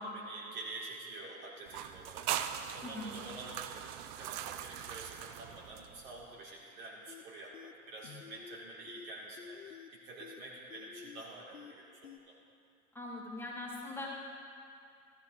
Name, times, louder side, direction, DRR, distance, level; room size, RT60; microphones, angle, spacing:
voice 1, 0.0-12.3, right 2 dB, 70° right, -6 dB, 4.0 m, -48 dB
sound 1, 1.7-6.2, right 11 dB, 50° right, 0.7 m, -41 dB
voice 2, 2.8-3.2 12.9-14.1, left 2 dB, 5° left, -4 dB, 2.5 m, -41 dB
sound 2, 7.1-7.2 7.5-7.7 8.0-8.6 8.9-9.1 9.4-9.9 10.2-10.4 10.7-11.2 11.5-11.7 12.0-12.2, left 8 dB, 85° left, 1.1 m, -50 dB
14.0 x 14.0 x 4.0 m, 2.4 s
hypercardioid pair, 85°, 42 cm